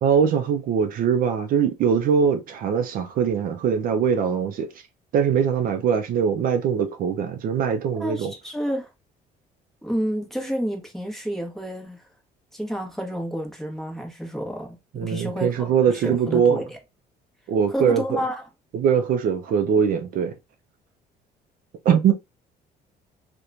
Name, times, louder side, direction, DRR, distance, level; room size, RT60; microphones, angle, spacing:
voice 1, 0.0-4.7 5.1-8.3 14.9-16.6 17.5-18.2 18.7-20.3 21.9-22.1, right 7 dB, 55° right, 0.4 m, -22 dB
voice 2, 8.0-8.9 9.8-12.0 12.5-14.8 15.0-16.8 17.7-18.4, equal, ahead, 0.8 m, -30 dB
2.9 x 2.1 x 2.4 m
cardioid pair, 110°, 17 cm